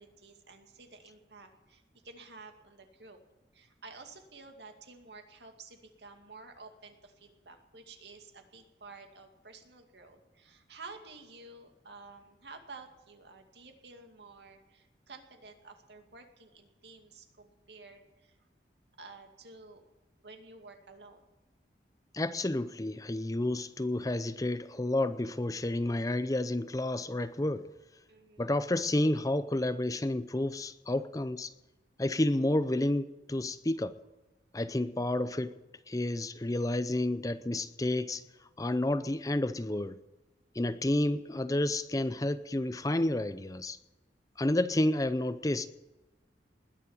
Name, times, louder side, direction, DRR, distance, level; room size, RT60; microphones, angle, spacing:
voice 1, 0.0-3.2 3.5-18.5 19.0-19.8 20.2-21.2 25.9-26.0 27.2-27.3 28.1-28.6, right 3 dB, 75° right, 5 dB, 2.3 m, -52 dB
voice 2, 22.1-27.7 28.4-31.5 32.0-33.9 34.5-35.5 35.9-38.2 38.6-40.0 40.6-43.8 44.4-45.7, left 1 dB, 20° left, 13 dB, 0.6 m, -30 dB
20.5 x 7.2 x 9.2 m, 1.1 s
head